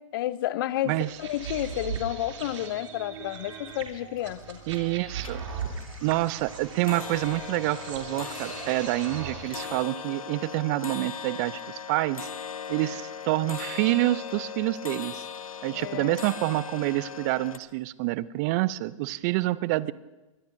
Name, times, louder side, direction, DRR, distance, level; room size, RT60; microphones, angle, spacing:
voice 1, 0.0-4.6 15.7-16.2, left 14 dB, 40° left, 18 dB, 0.6 m, -31 dB
sound 1, 1.0-9.8, right 6 dB, 60° right, 3.0 m, -39 dB
sound 2, 3.2-3.3 3.6-4.2 4.6-4.9 5.2-17.6, left 7 dB, 85° left, 1.3 m, -39 dB
voice 2, 4.7-5.4 6.0-12.3 12.7-15.2 15.6-19.9, right 18 dB, 30° right, 19 dB, 0.5 m, -27 dB
23.0 x 20.5 x 2.7 m, 1.1 s
hypercardioid pair, 125°, 17 cm